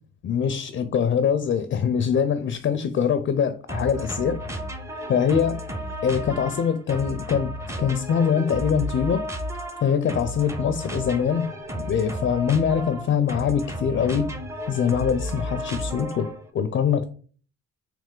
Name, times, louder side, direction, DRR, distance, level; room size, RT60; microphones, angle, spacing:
voice 1, 0.2-4.4 5.1-5.6 6.0-7.5 7.8-9.2 9.8-11.5 11.7-14.3 14.7-17.1, left 7 dB, 40° left, 0.4 m, -23 dB
sound 1, 3.7-16.4, equal, 10° right, 0.5 m, -33 dB
3.3 x 3.0 x 3.7 m
cardioid pair, 90°, 30 cm